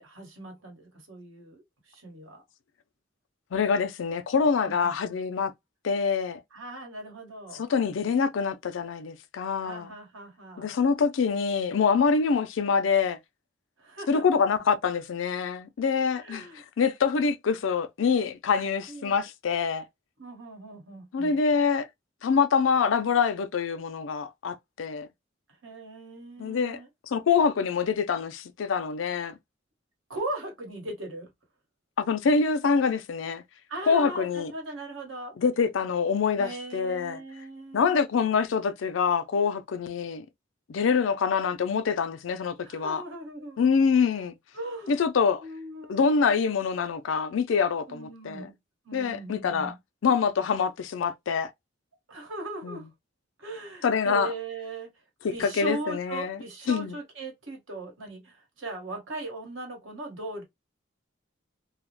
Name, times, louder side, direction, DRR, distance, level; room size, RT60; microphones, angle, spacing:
voice 1, 0.0-2.4 4.6-5.2 6.5-7.7 9.6-10.7 13.8-14.4 16.2-16.6 18.9-19.3 20.2-21.4 25.6-26.9 30.1-31.3 33.7-35.4 36.4-38.1 42.6-43.7 44.5-45.0 45.4-46.3 47.9-48.6 48.8-49.8 52.1-52.9 53.4-54.9 55.3-60.4, right 2 dB, 90° right, 1.2 m, -39 dB
voice 2, 3.5-5.5 5.8-6.4 7.5-9.9 10.6-13.2 14.1-19.9 21.1-21.9 22.2-25.1 26.4-26.8 27.1-29.4 32.0-33.4 33.9-34.5 35.4-37.2 37.7-40.3 40.7-43.0 43.6-44.3 44.9-45.4 45.9-48.5 48.9-49.7 50.0-51.5 52.6-52.8 53.8-54.3 55.2-56.4 56.7-57.0, left 5 dB, 85° left, 0.4 m, -25 dB
2.3 x 2.0 x 3.0 m
head